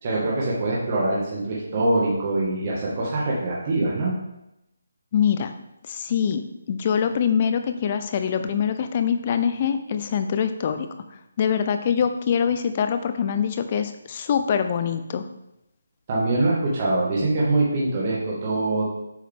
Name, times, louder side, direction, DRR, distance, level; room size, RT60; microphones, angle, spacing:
voice 1, 0.0-4.1 16.1-18.8, right 2 dB, 30° right, -5 dB, 1.7 m, -23 dB
voice 2, 5.1-5.5 5.9-6.4 6.7-10.9 11.4-15.2, left 7 dB, 30° left, 8 dB, 0.6 m, -24 dB
8.1 x 4.7 x 3.6 m, 0.88 s
hypercardioid pair, 165°, 0 cm